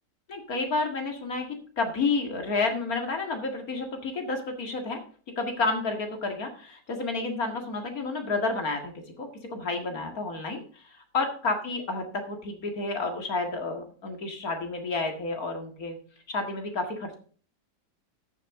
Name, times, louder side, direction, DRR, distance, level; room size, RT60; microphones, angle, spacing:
voice 1, 0.3-1.5 1.8-5.0 5.4-8.9 9.2-16.0 16.3-17.1, left 3 dB, 55° left, 4 dB, 2.3 m, -30 dB
13.5 x 7.0 x 3.7 m, 0.43 s
omnidirectional pair, 1.8 m